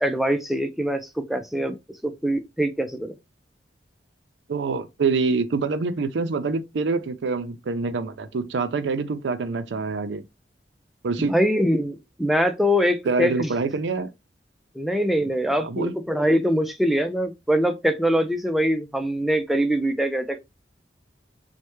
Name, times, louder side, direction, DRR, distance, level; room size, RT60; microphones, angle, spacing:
voice 1, 0.0-1.7 2.0-3.1 11.3-13.5 14.7-20.4, equal, ahead, 0.3 m, -23 dB
voice 2, 4.5-10.2 11.0-11.3 13.1-14.1 15.6-15.9, right 4 dB, 85° right, 0.5 m, -25 dB
3.2 x 2.1 x 3.0 m
head